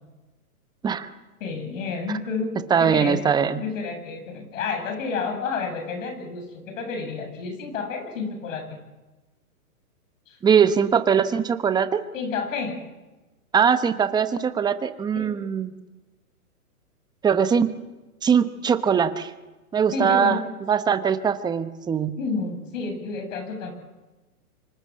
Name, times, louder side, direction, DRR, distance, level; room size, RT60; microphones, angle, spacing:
voice 1, 1.4-3.2 3.6-8.8 10.3-10.4 12.1-12.8 15.1-15.3 19.9-20.4 22.2-23.7, left 4 dB, 55° left, 6 dB, 7.6 m, -30 dB
voice 2, 2.7-3.6 10.4-12.0 13.5-15.7 17.2-17.7 18.2-19.3 19.7-20.4 20.7-22.2, right 7 dB, 10° right, 11 dB, 1.0 m, -21 dB
26.0 x 25.0 x 7.5 m, 1.1 s
hypercardioid pair, 145°, 45 cm